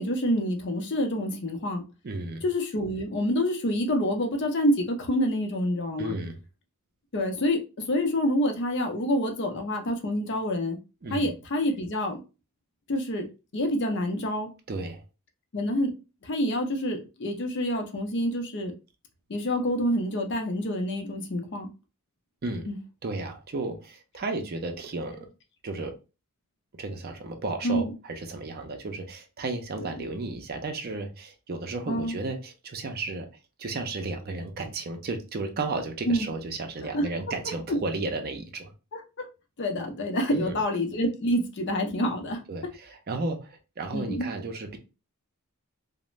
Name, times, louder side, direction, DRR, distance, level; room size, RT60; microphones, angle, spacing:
voice 1, 0.0-1.8 2.4-6.1 7.1-7.6 7.9-10.8 11.1-12.2 12.9-13.2 13.5-14.5 15.5-15.9 16.2-18.7 19.3-21.7 22.7-22.8 27.6-27.9 29.8-29.9 31.9-32.1 36.1-36.3 36.9-37.0 37.7-37.8 38.9-39.3 39.6-42.4 43.9-44.3, equal, 55° left, 0.5 m, -27 dB
voice 2, 2.0-2.4 6.0-6.4 11.0-11.3 14.7-15.0 22.4-22.7 23.0-25.3 25.6-25.9 26.8-33.3 33.6-38.7 40.3-40.6 42.5-44.8, right 3 dB, 45° right, 0.5 m, -33 dB
2.4 x 2.0 x 3.0 m
head